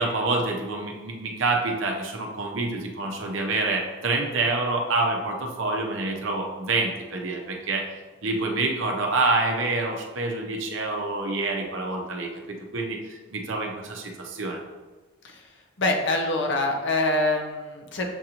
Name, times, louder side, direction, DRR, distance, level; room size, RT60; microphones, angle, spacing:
voice 1, 0.0-7.9 8.2-12.3 12.7-13.0 13.3-14.6, right 2 dB, 65° right, 1 dB, 0.7 m, -27 dB
voice 2, 15.8-18.1, left 2 dB, 60° left, 2 dB, 0.7 m, -25 dB
7.0 x 2.6 x 2.9 m, 1.2 s
head